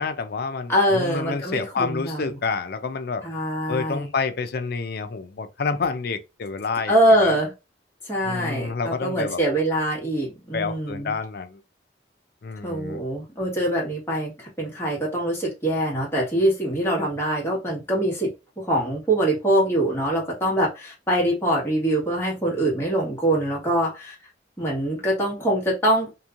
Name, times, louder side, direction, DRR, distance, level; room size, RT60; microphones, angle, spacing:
voice 1, 0.0-3.2 3.7-7.4 8.2-9.4 10.5-11.6 12.4-13.0, left 4 dB, 60° left, 0.5 m, -28 dB
voice 2, 0.7-2.4 3.2-4.1 6.9-7.5 8.1-11.1 12.6-18.3 18.6-24.1 24.6-26.1, right 1 dB, 15° left, 1.4 m, -23 dB
3.0 x 2.6 x 2.4 m
head